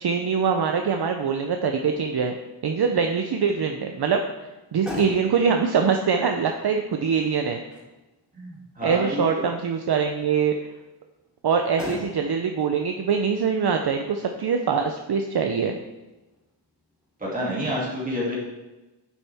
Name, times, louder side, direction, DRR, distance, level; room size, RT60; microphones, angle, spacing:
voice 1, 0.0-2.3 2.6-4.2 4.7-7.6 8.8-10.6 11.4-15.8, right 6 dB, 60° right, 5 dB, 0.7 m, -23 dB
Motor vehicle (road), 4.5-17.4, left 1 dB, ahead, 3.1 m, -43 dB
voice 2, 8.3-9.4 17.2-18.3, equal, 20° right, -6 dB, 2.4 m, -29 dB
10.0 x 7.2 x 3.5 m, 1.1 s
wide cardioid pair, 140°, 44 cm